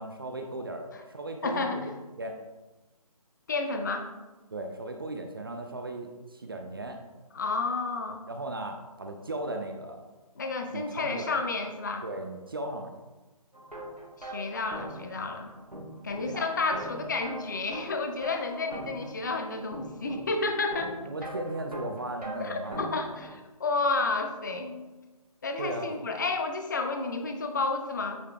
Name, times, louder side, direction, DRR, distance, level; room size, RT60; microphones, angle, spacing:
voice 1, 0.0-1.9 2.2-2.3 4.5-7.0 8.3-10.0 10.7-11.3 12.0-12.9 16.3-16.5 21.1-22.9 25.6-25.9, right 2 dB, 35° right, 4 dB, 0.4 m, -36 dB
voice 2, 1.4-1.9 3.5-4.1 7.3-8.2 10.4-12.0 14.2-15.5 16.0-20.9 22.4-24.8 25.4-28.2, left 3 dB, 30° left, 5 dB, 0.5 m, -31 dB
sound 1, 13.5-23.4, equal, 90° right, 1.2 m, -42 dB
8.4 x 4.8 x 2.3 m, 1.2 s
figure-of-eight pair, 145°, 19 cm